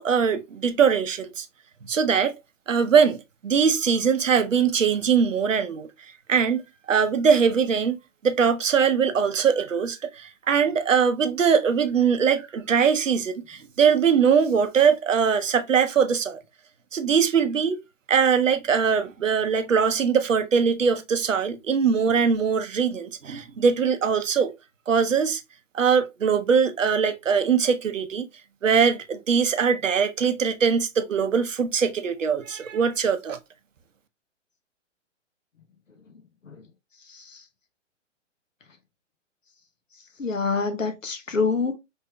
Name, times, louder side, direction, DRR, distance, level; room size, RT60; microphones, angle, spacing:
voice 1, 0.0-1.5 1.9-2.3 2.7-3.2 3.4-5.9 6.3-6.6 6.9-8.0 8.2-16.4 16.9-17.8 18.1-24.5 24.9-25.4 25.7-28.3 28.6-33.4, right 6 dB, 85° right, 0.7 m, -21 dB
voice 2, 37.0-37.4 40.2-41.8, left 4 dB, 85° left, 1.0 m, -27 dB
5.3 x 3.3 x 2.2 m
figure-of-eight pair, 115°, 37 cm